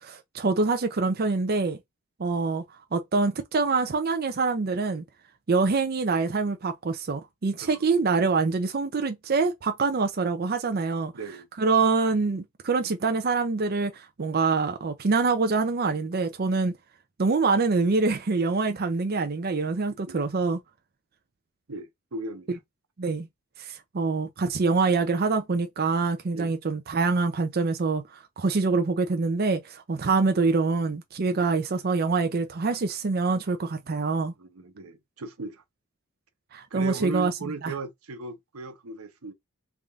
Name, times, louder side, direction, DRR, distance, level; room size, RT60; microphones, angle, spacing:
voice 1, 0.0-1.8 2.2-2.6 2.9-5.0 5.5-11.1 11.6-16.7 17.2-20.6 23.0-23.3 23.6-34.3 36.5-37.3 37.6-37.7, right 4 dB, 45° right, 0.5 m, -25 dB
voice 2, 11.1-11.5 20.1-20.3 21.7-22.5 26.3-26.6 34.4-35.6 36.7-39.3, right 3 dB, 90° right, 0.9 m, -37 dB
3.5 x 2.5 x 3.5 m
head